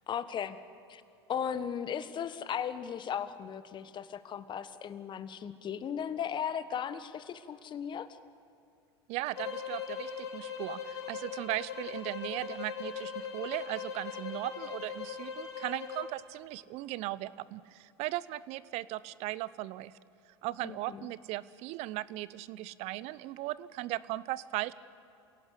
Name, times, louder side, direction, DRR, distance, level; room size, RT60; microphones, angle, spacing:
voice 1, 0.1-0.6 0.9-1.0 1.3-8.1 20.6-21.1, left 8 dB, 35° left, 13 dB, 1.3 m, -36 dB
voice 2, 9.1-19.9 20.4-24.7, right 17 dB, 50° right, 19 dB, 0.7 m, -37 dB
sound 1, 9.3-16.1, left 7 dB, 75° left, 3.0 m, -40 dB
27.5 x 17.5 x 8.4 m, 2.6 s
hypercardioid pair, 80°, 14 cm